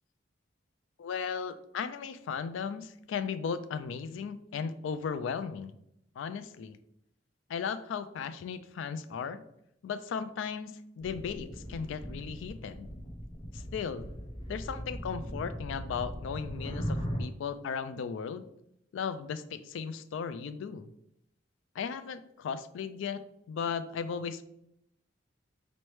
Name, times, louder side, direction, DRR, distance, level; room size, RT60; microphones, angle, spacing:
voice 1, 1.0-5.7 6.2-6.8 7.5-9.4 9.8-12.9 13.5-14.1 14.5-18.4 18.9-20.9 21.8-23.2 23.5-24.4, left 6 dB, 80° left, 12 dB, 0.3 m, -36 dB
sound 1, 11.0-17.2, equal, 25° left, 0.5 m, -39 dB
4.2 x 3.1 x 3.1 m, 0.78 s
head